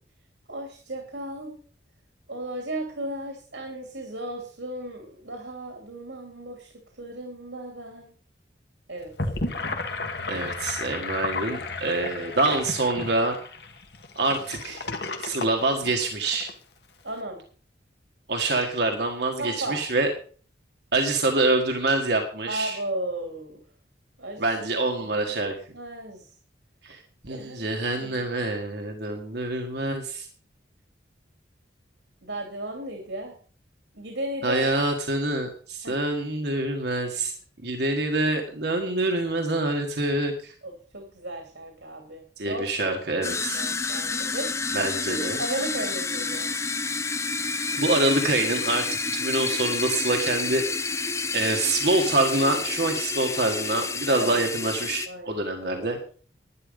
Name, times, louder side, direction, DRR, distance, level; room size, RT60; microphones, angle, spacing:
voice 1, 0.5-1.6 2.3-6.7 7.0-8.1 8.9-9.1 17.0-17.4 19.4-19.8 22.5-23.6 24.2-25.4 25.7-26.3 27.3-28.2 32.2-33.3 33.9-34.7 35.8-36.0 40.6-43.0 43.5-44.5 45.1-46.5 54.2-54.5 55.1-55.9, right 1 dB, 75° right, 2 dB, 2.7 m, -35 dB
Gurgling / Sink (filling or washing), 9.0-16.5, left 3 dB, 60° left, 1.6 m, -33 dB
voice 2, 10.3-13.4 14.2-14.9 15.2-16.5 18.3-20.1 20.9-22.8 24.4-25.6 26.8-30.3 34.4-37.3 37.6-40.5 42.4-43.7 44.7-45.4 47.7-51.0 51.3-56.0, right 2 dB, 60° right, 2 dB, 1.6 m, -26 dB
sound 1, 43.2-55.1, left 4 dB, 15° left, 0.5 m, -29 dB
11.5 x 10.0 x 5.3 m, 0.43 s
head